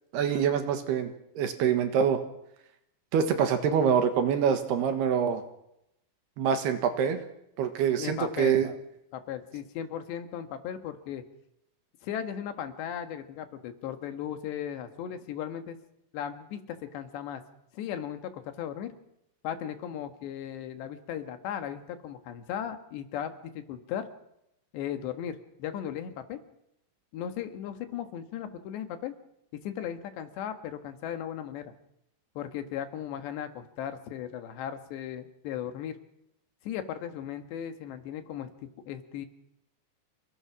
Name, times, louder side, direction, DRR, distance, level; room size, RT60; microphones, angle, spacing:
voice 1, 0.1-2.2 3.1-5.4 6.4-7.2 7.6-8.7, right 7 dB, 70° right, 8 dB, 3.3 m, -25 dB
voice 2, 8.0-8.6 9.1-11.2 12.0-15.8 16.1-17.4 17.7-18.9 19.4-24.1 24.7-26.4 27.1-29.1 29.5-31.7 32.4-36.0 36.6-38.5 38.9-39.3, left 9 dB, 75° left, 8 dB, 3.6 m, -36 dB
28.0 x 18.0 x 6.1 m, 0.82 s
omnidirectional pair, 5.2 m